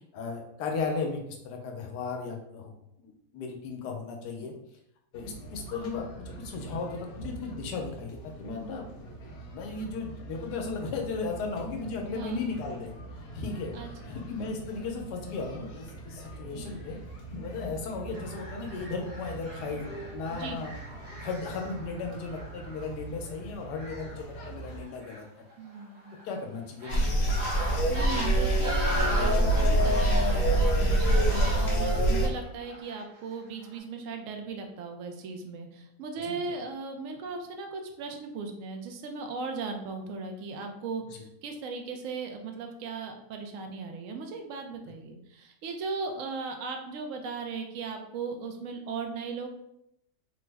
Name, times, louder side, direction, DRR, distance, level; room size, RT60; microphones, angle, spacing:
voice 1, 0.1-2.7 3.0-4.5 5.1-8.9 9.5-12.9 13.3-13.7 14.1-17.0 17.4-20.7 21.2-25.3 26.2-27.2 36.2-36.4 41.1-41.3, left 4 dB, 90° left, 2 dB, 1.2 m, -36 dB
sound 1, 5.1-24.9, right 2 dB, 70° left, 1.3 m, -44 dB
voice 2, 12.0-12.6 13.7-14.2 20.3-20.6 25.6-26.1 27.9-49.5, right 4 dB, 70° right, 4 dB, 0.8 m, -37 dB
sound 2, 18.1-22.9 23.6-26.4 26.8-33.2 33.6-33.8, equal, 50° right, 0.4 m, -39 dB
sound 3, 26.9-32.3, right 1 dB, 55° left, 0.6 m, -24 dB
3.4 x 2.0 x 3.3 m, 0.78 s
omnidirectional pair, 1.7 m